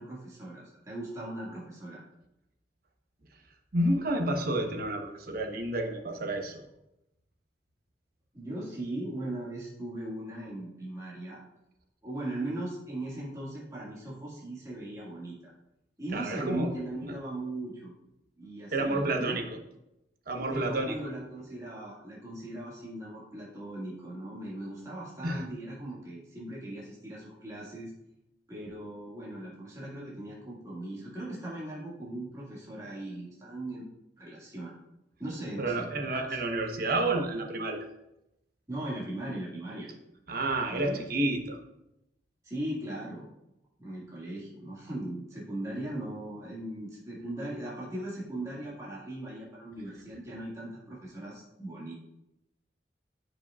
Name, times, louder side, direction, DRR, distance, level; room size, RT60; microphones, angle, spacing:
voice 1, 0.0-2.0 8.3-11.4 12.0-15.4 16.0-18.0 18.4-19.4 20.5-27.9 28.5-33.9 34.2-34.8 35.2-36.4 38.7-39.9 40.7-41.0 42.4-43.3 43.8-51.9, right 1 dB, 20° right, -7 dB, 2.0 m, -39 dB
voice 2, 3.7-6.6 16.1-16.8 17.1-17.2 18.7-19.6 20.3-21.0 25.2-25.4 35.6-37.8 40.3-41.6, right 2 dB, 55° right, 4 dB, 1.0 m, -30 dB
13.5 x 5.1 x 2.4 m, 0.88 s
head